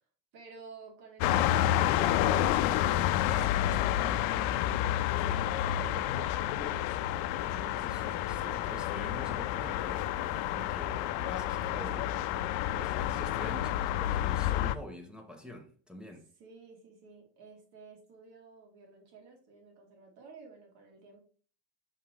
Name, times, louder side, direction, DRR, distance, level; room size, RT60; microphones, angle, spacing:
voice 1, 0.3-2.4 3.1-3.8 4.3-4.6 4.8-6.8 13.1-13.5 16.4-21.2, right 4 dB, 55° right, 2.7 m, -53 dB
sound 1, 1.2-14.8, left 12 dB, 75° left, 0.7 m, -29 dB
voice 2, 7.4-12.2 12.7-16.3, equal, ahead, 0.8 m, -46 dB
6.3 x 5.5 x 2.9 m
cardioid pair, 170°, 44 cm